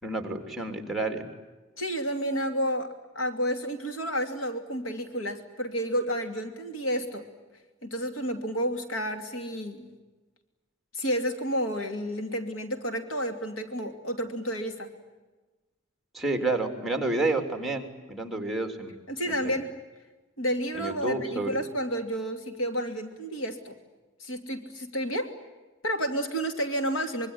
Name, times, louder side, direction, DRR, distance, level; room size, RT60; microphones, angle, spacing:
voice 1, 0.0-1.3 16.1-19.0 19.4-19.5 20.8-21.6, right 2 dB, ahead, 5 dB, 3.3 m, -30 dB
voice 2, 1.8-7.2 7.8-9.9 10.9-14.9 19.1-19.7 20.4-23.8 24.2-25.3 25.8-27.3, equal, 85° left, 6 dB, 2.8 m, -30 dB
25.5 x 23.0 x 9.9 m, 1.2 s
head